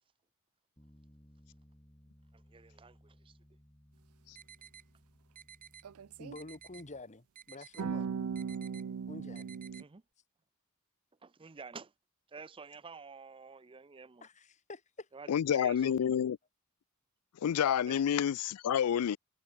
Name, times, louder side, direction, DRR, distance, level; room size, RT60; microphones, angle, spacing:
Bass guitar, 0.8-7.0, equal, 15° left, 7.0 m, -62 dB
voice 1, 2.5-3.3 9.8-10.0 11.2-11.9 12.3-14.3 15.1-15.9 17.9-18.0, right 4 dB, 25° right, 0.5 m, -50 dB
sound 1, 4.4-4.8 5.4-5.8 6.4-6.8 7.4-7.8 8.4-8.8 9.4-9.8, right 8 dB, 40° right, 2.9 m, -53 dB
sound 2, 5.8-6.4 7.8-9.8, right 6 dB, 80° right, 0.4 m, -38 dB
voice 2, 6.2-8.1 9.1-9.6 14.2-15.1, left 2 dB, 30° left, 1.6 m, -48 dB
voice 3, 15.3-16.4 17.3-19.2, left 8 dB, 85° left, 0.4 m, -29 dB
head